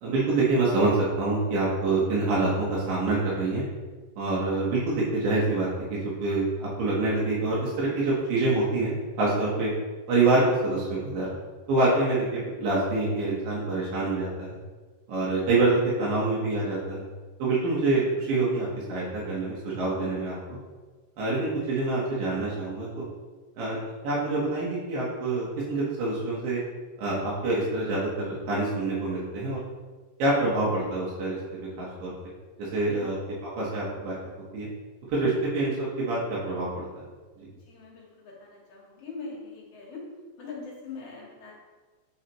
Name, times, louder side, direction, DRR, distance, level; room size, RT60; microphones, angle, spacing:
voice 1, 0.0-3.6 4.2-9.7 10.1-11.3 11.7-14.6 15.1-17.0 17.4-20.6 21.2-23.0 23.6-23.8 24.0-26.6 27.0-29.6 30.2-31.4 31.8-32.1 32.6-33.2 33.6-34.1 34.5-34.7 35.1-36.9 37.4-37.5, right 2 dB, 80° right, -7 dB, 2.8 m, -26 dB
voice 2, 37.7-40.0 40.4-41.5, left 4 dB, 60° left, -3 dB, 1.8 m, -42 dB
8.0 x 4.0 x 3.0 m, 1.3 s
omnidirectional pair, 3.9 m